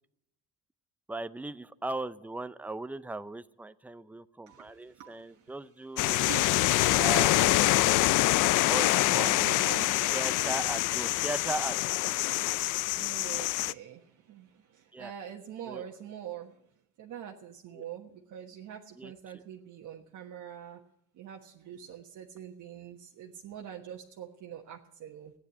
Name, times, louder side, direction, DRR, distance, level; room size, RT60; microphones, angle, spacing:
voice 1, 1.1-6.2 6.9-8.0 8.6-9.3 10.1-11.9 14.9-15.1 15.7-15.8 17.8-17.9 19.0-19.1, right 2 dB, 5° right, 14 dB, 0.5 m, -38 dB
voice 2, 4.5-5.6 5.8-7.0 8.0-8.7 9.0-10.2 12.3-16.6 17.0-20.8 21.1-25.3, right 9 dB, 60° right, 0 dB, 1.4 m, -45 dB
sound 1, 6.0-13.7, left 17 dB, 70° left, 0.5 m, -25 dB
14.5 x 9.8 x 8.2 m, 0.79 s
cardioid pair, 105°, 33 cm